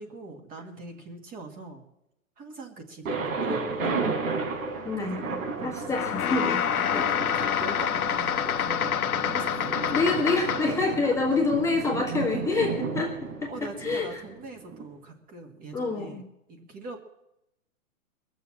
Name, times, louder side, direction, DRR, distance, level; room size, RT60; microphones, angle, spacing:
voice 1, 0.0-1.9 2.4-4.0 5.0-5.2 5.6-5.9 6.9-9.9 11.0-11.1 13.5-17.0, right 3 dB, 20° right, 3 dB, 1.8 m, -42 dB
Thunder, 3.0-14.8, right 4 dB, 75° right, 4.2 m, -33 dB
voice 2, 4.8-5.2 5.6-7.0 9.9-14.2 15.7-16.2, left 3 dB, 5° left, -2 dB, 1.5 m, -27 dB
sound 1, 5.9-10.9, left 8 dB, 90° left, 1.0 m, -27 dB
21.5 x 7.2 x 7.3 m, 0.87 s
hypercardioid pair, 140°, 42 cm